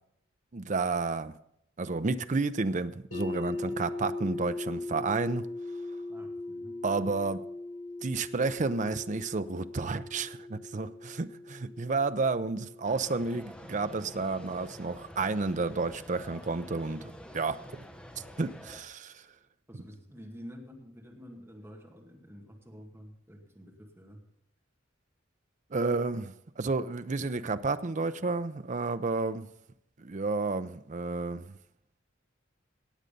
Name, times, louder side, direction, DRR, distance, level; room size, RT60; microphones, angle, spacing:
voice 1, 0.5-1.4 1.8-5.5 6.8-7.4 8.0-17.8 18.4-19.2 25.7-29.5 30.0-31.6, right 3 dB, 40° right, 12 dB, 0.5 m, -31 dB
sound 1, 3.1-15.0, left 2 dB, 85° left, 4.3 m, -40 dB
voice 2, 6.1-6.8 19.7-24.2, equal, 10° right, 0 dB, 2.2 m, -49 dB
sound 2, 12.8-18.8, equal, 5° left, 0.9 m, -48 dB
17.5 x 8.0 x 5.3 m, 0.75 s
head